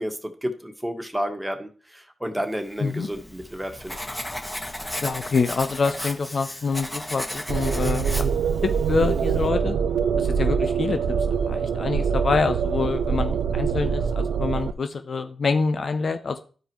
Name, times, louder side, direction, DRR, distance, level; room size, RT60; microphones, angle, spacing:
voice 1, 0.0-3.9, equal, 10° right, 5 dB, 1.6 m, -31 dB
Writing, 2.8-9.5, left 1 dB, 15° left, 1.4 m, -35 dB
voice 2, 5.0-8.2 8.6-9.8 10.2-11.0 11.4-16.4, left 4 dB, 60° left, 8 dB, 0.6 m, -26 dB
sound 1, 7.5-14.7, right 6 dB, 80° right, 0.4 m, -24 dB
11.5 x 4.9 x 3.1 m, 0.40 s
supercardioid pair, 40°, 0 cm